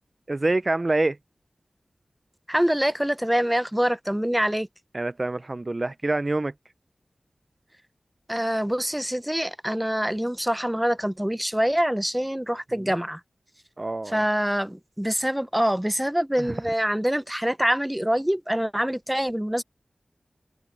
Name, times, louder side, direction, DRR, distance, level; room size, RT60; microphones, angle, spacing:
voice 1, 0.3-1.2 4.9-6.5 13.8-14.2 16.4-16.5, right 2 dB, 40° right, 0.3 m, -26 dB
voice 2, 2.5-4.7 8.3-13.2 14.1-19.6, equal, 5° right, 0.6 m, -25 dB
wide cardioid pair, 70°, 0 cm